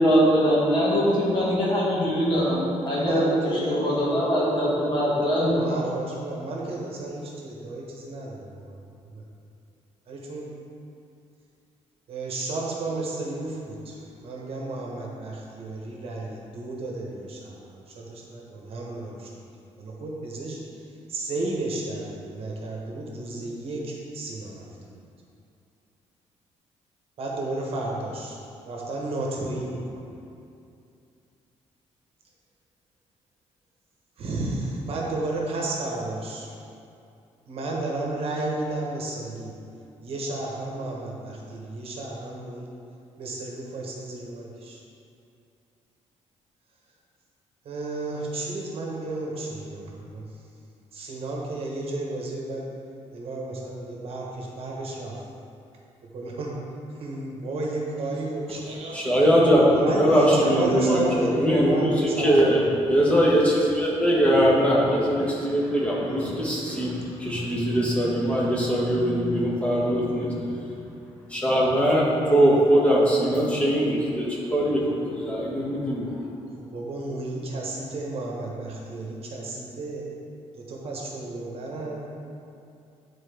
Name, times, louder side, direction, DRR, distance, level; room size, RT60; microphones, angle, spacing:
voice 1, 0.0-5.8, equal, 40° left, -6 dB, 1.7 m, -22 dB
voice 2, 3.0-4.1 5.6-8.8 9.1-9.2 10.1-10.6 12.1-19.4 19.8-24.9 27.2-28.4 28.7-30.2 34.2-36.5 37.5-39.5 40.0-42.7 43.2-44.8 47.6-50.3 50.9-52.7 53.1-55.2 56.0-56.6 56.9-59.3 59.6-62.8 76.6-80.1 80.5-82.1, right 2 dB, 55° right, -2 dB, 1.1 m, -32 dB
voice 3, 58.9-70.8 71.3-76.2, equal, 10° left, -5 dB, 1.2 m, -21 dB
9.8 x 4.3 x 3.4 m, 2.6 s
cardioid pair, 160°, 12 cm